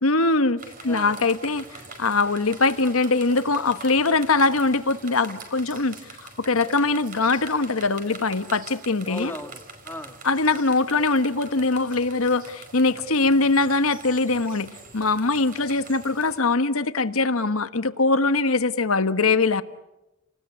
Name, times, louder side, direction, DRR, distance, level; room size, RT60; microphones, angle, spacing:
voice 1, 0.0-6.0 6.4-9.3 10.2-19.6, left 3 dB, 75° left, 1.3 m, -22 dB
sound 1, 0.6-16.4, right 3 dB, 40° right, 5.2 m, -44 dB
voice 2, 9.1-10.2, left 1 dB, 10° left, 2.3 m, -37 dB
30.0 x 20.0 x 9.9 m
head